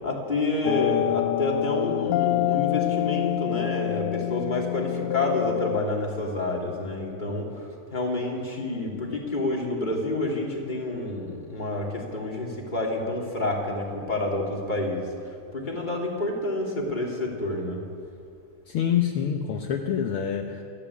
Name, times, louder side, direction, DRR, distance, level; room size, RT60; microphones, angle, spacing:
voice 1, 0.0-15.1 15.5-17.8, left 2 dB, 15° left, -1 dB, 2.9 m, -28 dB
sound 1, 0.6-5.8, left 16 dB, 85° left, 2.3 m, -26 dB
voice 2, 18.7-20.6, left 9 dB, 65° left, 3 dB, 1.4 m, -26 dB
28.0 x 12.5 x 8.5 m, 2.5 s
omnidirectional pair, 3.7 m